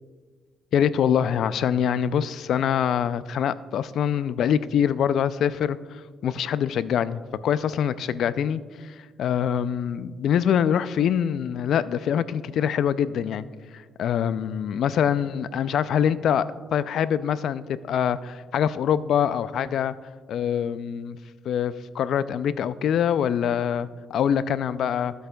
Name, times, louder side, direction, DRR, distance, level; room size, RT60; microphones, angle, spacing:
voice 1, 0.7-13.4 13.7-16.5 16.7-19.9 20.3-21.2 21.5-25.1, left 8 dB, 70° left, 16 dB, 0.3 m, -24 dB
15.0 x 7.9 x 2.3 m, 1.5 s
cardioid pair, 90°, 0 cm